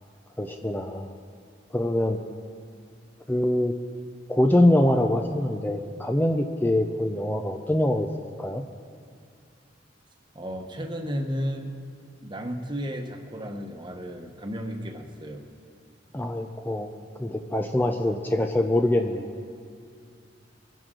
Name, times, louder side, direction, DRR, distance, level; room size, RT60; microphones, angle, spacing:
voice 1, 0.4-1.1 1.7-2.2 3.3-3.7 4.3-8.1 8.4-8.6 16.1-16.9 17.2-19.3, left 1 dB, 10° left, 5 dB, 0.5 m, -24 dB
voice 2, 10.3-11.8 12.2-15.4, equal, 25° right, 4 dB, 1.1 m, -33 dB
22.5 x 11.0 x 3.8 m, 2.2 s
head